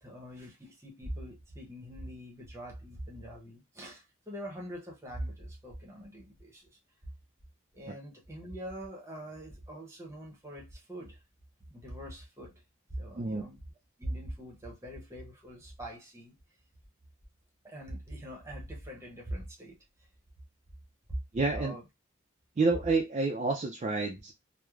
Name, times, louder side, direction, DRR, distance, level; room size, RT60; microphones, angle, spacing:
voice 1, 0.0-6.8 7.7-11.2 11.7-12.5 12.9-13.6 14.0-16.3 17.6-19.8 21.1-21.2 21.5-21.8, right 1 dB, 15° right, 0.7 m, -42 dB
voice 2, 21.3-21.8 22.6-24.3, right 3 dB, 30° right, 0.3 m, -29 dB
3.1 x 2.0 x 2.3 m
head